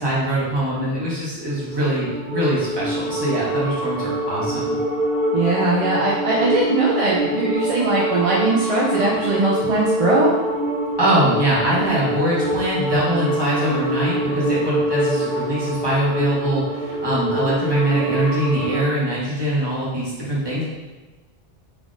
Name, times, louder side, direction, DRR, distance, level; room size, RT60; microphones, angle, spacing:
voice 1, 0.0-4.8 11.0-20.6, right 1 dB, 25° right, -8 dB, 1.1 m, -22 dB
sound 1, 1.3-18.9, right 1 dB, ahead, 1.0 m, -25 dB
voice 2, 5.3-10.3, right 2 dB, 50° right, -5 dB, 0.4 m, -20 dB
3.8 x 3.4 x 2.5 m, 1.2 s
omnidirectional pair, 1.1 m